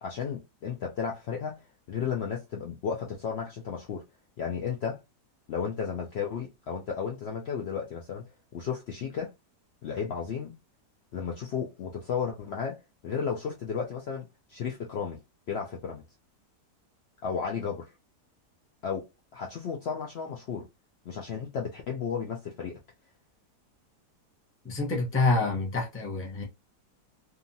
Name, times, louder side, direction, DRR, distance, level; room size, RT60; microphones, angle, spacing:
voice 1, 0.0-1.6 1.9-4.0 4.4-5.0 5.5-8.2 8.5-9.3 9.8-10.6 11.1-15.2 15.5-16.0 17.2-17.9 18.8-19.1 19.3-20.7 21.1-22.8, left 6 dB, 85° left, 0.5 m, -33 dB
voice 2, 24.6-26.4, left 3 dB, 15° left, 0.4 m, -27 dB
2.8 x 2.4 x 2.6 m
omnidirectional pair, 1.7 m